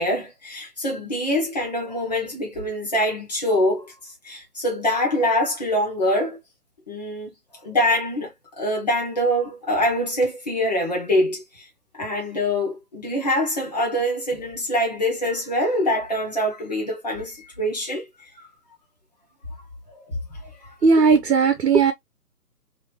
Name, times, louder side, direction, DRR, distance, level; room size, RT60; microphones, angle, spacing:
voice 1, 0.0-6.4 6.9-7.3 7.6-11.7 11.9-18.1 18.4-18.5 20.0-20.7, left 1 dB, 25° left, 1.1 m, -24 dB
voice 2, 20.8-21.9, right 5 dB, 75° right, 1.0 m, -17 dB
3.0 x 2.8 x 2.3 m
hypercardioid pair, 175°, 48 cm